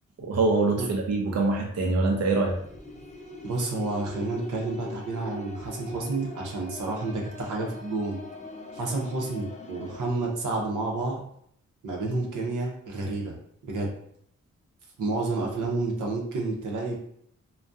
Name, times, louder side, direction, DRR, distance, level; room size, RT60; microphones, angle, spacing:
voice 1, 0.2-2.5, right 3 dB, 60° right, 0 dB, 0.6 m, -24 dB
sound 1, 2.5-10.1, left 2 dB, 25° left, 0.5 m, -42 dB
voice 2, 3.4-8.2 8.7-11.2 11.8-13.3 13.6-13.9 15.0-17.0, right 2 dB, 90° right, -1 dB, 0.7 m, -30 dB
2.6 x 2.2 x 2.3 m, 0.67 s
cardioid pair, 50°, 30 cm